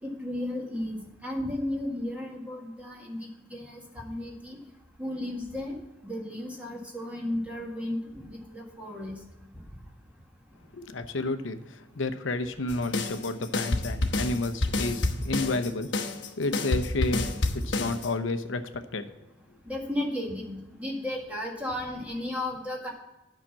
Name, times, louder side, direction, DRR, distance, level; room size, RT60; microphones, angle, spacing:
voice 1, 0.0-4.6 5.0-5.8 6.0-9.2 19.6-22.9, left 1 dB, 5° right, -1 dB, 1.7 m, -34 dB
voice 2, 10.7-15.9 16.4-17.3 17.5-19.1, left 2 dB, 80° left, 8 dB, 0.8 m, -31 dB
sound 1, 12.7-18.1, left 2 dB, 60° left, 1.0 m, -29 dB
8.8 x 5.9 x 7.0 m, 1.0 s
head